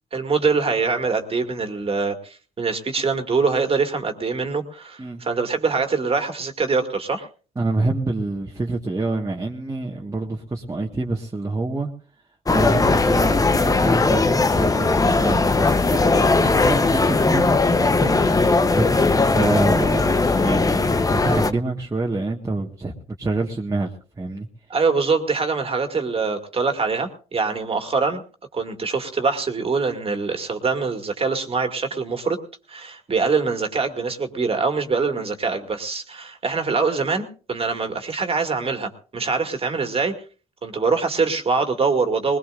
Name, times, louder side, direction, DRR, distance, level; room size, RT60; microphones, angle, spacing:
voice 1, 0.1-7.3 24.7-28.2 28.5-32.4 32.7-40.1 40.6-42.4, right 4 dB, 35° right, 5 dB, 2.3 m, -24 dB
voice 2, 7.6-11.9 12.5-18.9 19.3-24.5, right 2 dB, 20° right, -1 dB, 1.6 m, -27 dB
sound 1, 12.5-21.5, left 3 dB, 20° left, 0.9 m, -19 dB
20.0 x 20.0 x 2.6 m, 0.39 s
supercardioid pair, 75°, 17 cm